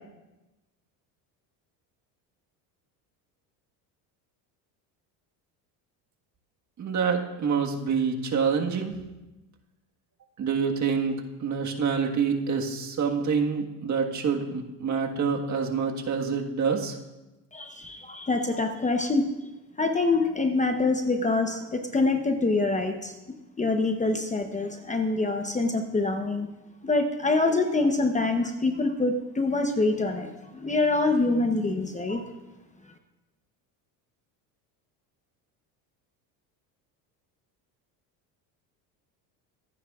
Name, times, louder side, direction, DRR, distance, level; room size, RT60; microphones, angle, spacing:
voice 1, 6.8-8.9 10.4-16.9, right 6 dB, 40° right, 2 dB, 1.6 m, -27 dB
voice 2, 17.5-19.3 19.8-23.1 23.6-26.5 26.8-30.3 30.5-32.3, left 3 dB, 15° left, 5 dB, 0.9 m, -25 dB
24.0 x 9.6 x 2.4 m, 1.0 s
supercardioid pair, 105°, 45 cm